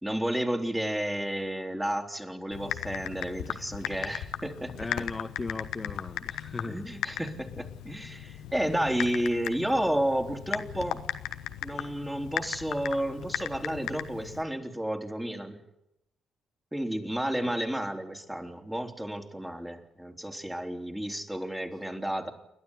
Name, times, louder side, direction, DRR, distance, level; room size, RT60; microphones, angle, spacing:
voice 1, 0.0-4.9 6.7-11.0 11.6-15.6 16.7-22.3, right 1 dB, 10° right, 4 dB, 3.4 m, -31 dB
Typing, 2.5-14.4, left 11 dB, 70° left, 1.1 m, -37 dB
voice 2, 4.8-6.9 17.4-17.5, left 3 dB, 30° left, 6 dB, 1.4 m, -37 dB
28.5 x 12.5 x 9.7 m, 0.90 s
hypercardioid pair, 40°, 0 cm